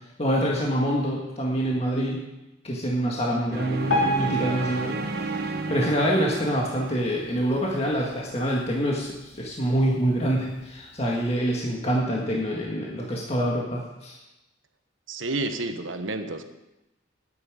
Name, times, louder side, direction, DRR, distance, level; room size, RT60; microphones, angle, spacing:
voice 1, 0.2-2.2 2.6-5.0 5.2-14.2, equal, 30° left, -3 dB, 1.8 m, -26 dB
sound 1, 3.5-7.7, right 3 dB, 50° right, 1.0 m, -33 dB
Piano, 3.9-7.0 7.5-7.7 8.0-8.1 8.8-8.9 9.5-9.6, left 1 dB, 75° left, 3.0 m, -30 dB
voice 2, 15.1-16.4, right 2 dB, 80° right, 8 dB, 1.3 m, -30 dB
9.7 x 8.5 x 9.9 m, 0.96 s
head